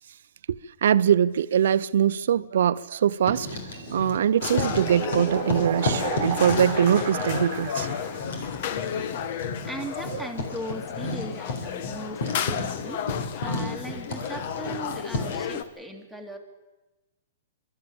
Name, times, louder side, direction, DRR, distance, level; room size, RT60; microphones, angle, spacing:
voice 1, 0.5-3.6 3.9-7.9, right 9 dB, 70° right, 0.6 m, -23 dB
Writing, 3.1-4.2 4.5-15.5, left 2 dB, 70° left, 3.9 m, -33 dB
sound 1, 3.5-8.3, right 13 dB, 45° right, 1.3 m, -34 dB
sound 2, 4.4-15.6, left 8 dB, 50° left, 1.1 m, -33 dB
voice 2, 9.6-16.4, right 1 dB, ahead, 2.1 m, -38 dB
23.0 x 13.0 x 8.7 m
hypercardioid pair, 150°, 0 cm